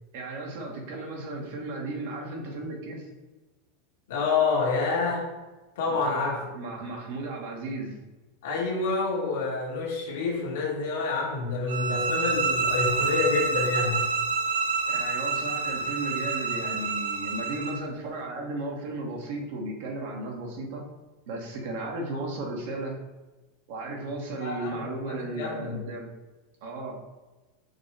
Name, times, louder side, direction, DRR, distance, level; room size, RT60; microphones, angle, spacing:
voice 1, 0.1-3.1 5.9-8.0 14.9-20.8 21.3-23.0 23.7-26.1 26.6-27.0, right 2 dB, 55° right, 0 dB, 0.9 m, -35 dB
voice 2, 4.1-5.3 5.7-6.4 8.4-14.0 24.4-25.8, left 4 dB, 75° left, -3 dB, 1.3 m, -28 dB
sound 1, 11.7-17.8, right 4 dB, 85° right, 0.6 m, -28 dB
5.0 x 2.0 x 4.4 m, 1.2 s
supercardioid pair, 180°, 0 cm